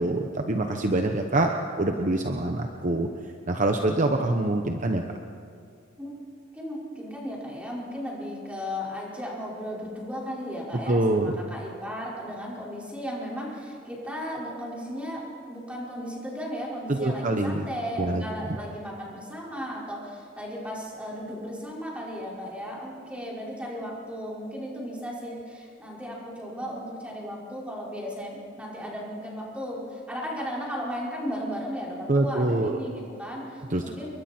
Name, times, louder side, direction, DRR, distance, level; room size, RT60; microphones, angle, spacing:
voice 1, 0.0-3.1 3.5-5.0 10.9-11.3 16.9-17.6 18.0-18.2 32.1-32.8 33.7-33.8, right 2 dB, 40° right, 4 dB, 1.0 m, -25 dB
voice 2, 6.5-34.1, equal, 5° right, -5 dB, 5.2 m, -35 dB
28.5 x 23.0 x 4.5 m, 2.3 s
head